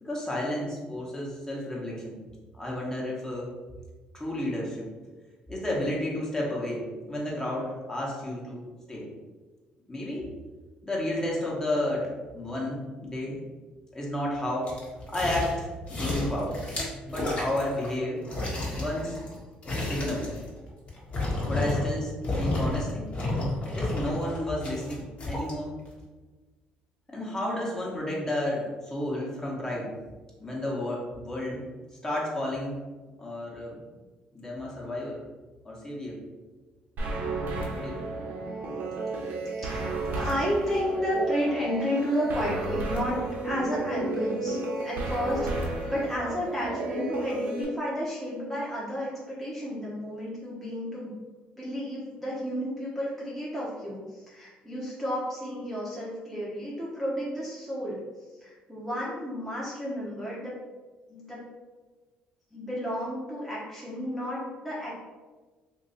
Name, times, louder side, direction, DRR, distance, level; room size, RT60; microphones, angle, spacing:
voice 1, 0.0-2.2 2.5-3.5 4.1-4.9 5.5-6.8 7.1-8.6 8.9-9.1 9.9-10.3 10.8-13.4 13.9-14.7 15.1-16.6 17.1-18.2 18.7-19.2 19.6-20.3 21.4-22.1 22.4-23.0 23.7-25.7 27.1-29.9 30.4-31.6 32.0-32.8 33.2-33.8 34.3-35.2 35.6-36.2 37.7-38.1, left 1 dB, 20° left, -4 dB, 1.2 m, -32 dB
sound 1, 14.6-15.6 15.9-18.0 18.2-22.0 22.2-22.8 23.1-25.5 26.0-26.1, left 2 dB, 40° left, 1.3 m, -31 dB
sound 2, 37.0-47.6, right 2 dB, 65° right, 1.0 m, -32 dB
voice 2, 39.6-44.6 44.8-51.1 51.6-58.0 58.4-60.5 61.1-61.4 62.5-64.9, equal, ahead, -8 dB, 1.0 m, -32 dB
2.9 x 2.6 x 4.0 m, 1.3 s
supercardioid pair, 85°, 3 cm